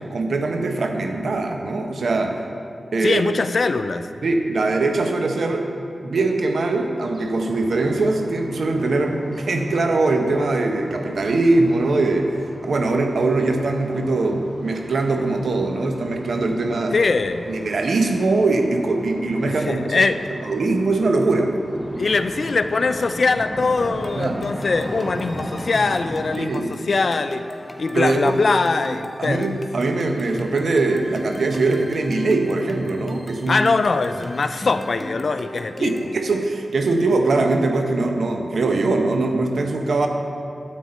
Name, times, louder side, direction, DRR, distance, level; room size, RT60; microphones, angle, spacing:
voice 1, 0.1-2.4 2.9-3.2 4.2-5.7 6.0-12.3 12.6-17.0 17.5-20.0 20.4-21.5 24.1-24.5 26.3-26.7 27.9-28.4 29.2-33.6 35.8-40.1, right 3 dB, 80° right, 4 dB, 0.8 m, -21 dB
voice 2, 3.0-4.1 16.9-17.5 19.4-20.2 22.0-27.4 27.8-29.5 33.5-35.9, left 3 dB, 65° left, 10 dB, 0.4 m, -22 dB
sound 1, 7.0-26.5, equal, 10° right, 1.7 m, -38 dB
sound 2, 23.9-36.2, equal, 15° left, 0.9 m, -37 dB
9.5 x 8.3 x 4.3 m, 2.5 s
cardioid pair, 40°, 0 cm